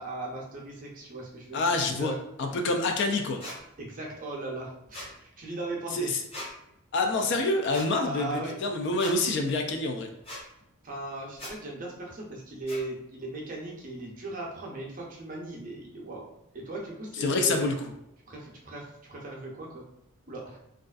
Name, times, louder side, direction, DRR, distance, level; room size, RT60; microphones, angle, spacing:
voice 1, 0.0-2.2 3.8-6.1 8.0-8.6 10.8-16.3 16.5-17.6 18.3-19.9 20.3-20.6, right 2 dB, 35° right, -2 dB, 0.5 m, -38 dB
voice 2, 1.5-2.1 2.4-3.4 5.9-6.2 6.9-10.1 17.1-17.8, left 2 dB, 50° left, 4 dB, 0.3 m, -27 dB
sound 1, 3.4-3.6 4.9-5.1 6.3-6.5 7.7-7.9 9.0-9.2 10.2-10.4 11.4-11.5 12.7-12.8, left 1 dB, 25° left, 0.7 m, -39 dB
2.4 x 2.3 x 2.3 m, 0.83 s
head